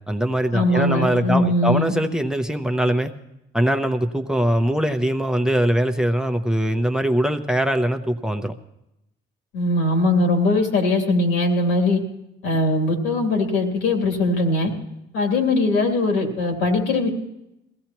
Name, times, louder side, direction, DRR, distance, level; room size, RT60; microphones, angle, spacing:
voice 1, 0.0-3.1 3.5-8.5, right 1 dB, 5° right, 7 dB, 0.6 m, -22 dB
voice 2, 0.5-1.9 9.5-12.0 12.4-14.7 15.1-17.1, left 2 dB, 85° left, 2 dB, 2.8 m, -20 dB
21.5 x 16.0 x 3.0 m, 0.86 s
cardioid pair, 130°, 19 cm